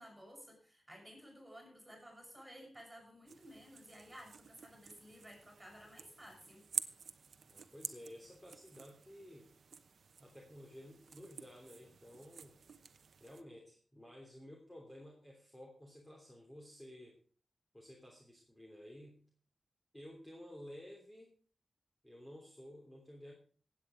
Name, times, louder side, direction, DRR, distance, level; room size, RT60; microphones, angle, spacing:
voice 1, 0.0-6.7, equal, 10° right, 1 dB, 7.5 m, -55 dB
sound 1, 3.3-13.4, right 5 dB, 75° right, 0.9 m, -49 dB
voice 2, 7.5-9.5 10.2-12.6 13.2-17.2 17.7-19.2 19.9-21.3 22.0-23.3, equal, 10° left, -1 dB, 3.2 m, -53 dB
16.5 x 8.7 x 5.1 m, 0.42 s
wide cardioid pair, 120°, 0 cm